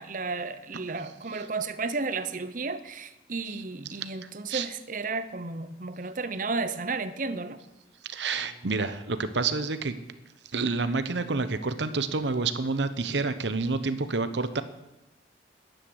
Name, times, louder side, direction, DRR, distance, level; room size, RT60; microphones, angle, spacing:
voice 1, 0.0-7.6, right 3 dB, 45° right, 12 dB, 0.8 m, -33 dB
voice 2, 4.2-4.7 8.1-9.9 10.5-14.6, right 4 dB, 70° right, 11 dB, 0.9 m, -29 dB
11.0 x 10.0 x 8.0 m, 0.93 s
head